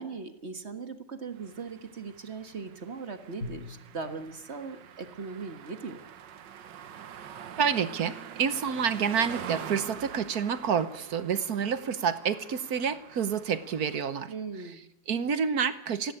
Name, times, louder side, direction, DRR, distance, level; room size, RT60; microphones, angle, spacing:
voice 1, 0.0-6.0 14.3-14.9, right 4 dB, 40° right, 9 dB, 1.6 m, -39 dB
sound 1, 1.4-14.4, right 9 dB, 75° right, 1.7 m, -45 dB
Drum, 3.4-5.8, left 2 dB, 55° left, 2.3 m, -45 dB
voice 2, 7.6-16.1, right 7 dB, 60° right, 13 dB, 1.5 m, -29 dB
17.5 x 15.5 x 10.0 m, 0.81 s
omnidirectional pair, 2.0 m